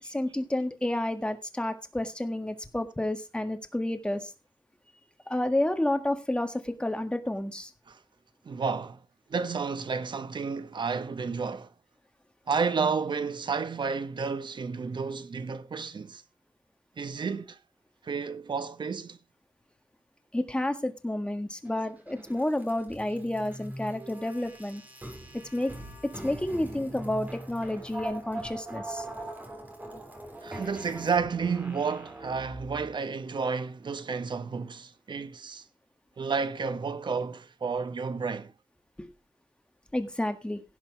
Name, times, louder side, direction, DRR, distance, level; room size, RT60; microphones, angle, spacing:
voice 1, 0.0-4.3 5.3-7.7 20.3-24.8 25.5-25.7 26.2-29.0 39.0-39.1 39.9-40.6, left 1 dB, 10° left, 1.6 m, -30 dB
voice 2, 8.4-9.0 9.3-11.7 12.5-16.2 17.0-17.6 18.0-19.2 30.4-35.6 36.2-38.5, right 5 dB, 65° right, 0.9 m, -31 dB
sound 1, 21.6-32.9, right 1 dB, 20° right, 3.2 m, -42 dB
16.5 x 6.1 x 4.6 m
wide cardioid pair, 110°, 8 cm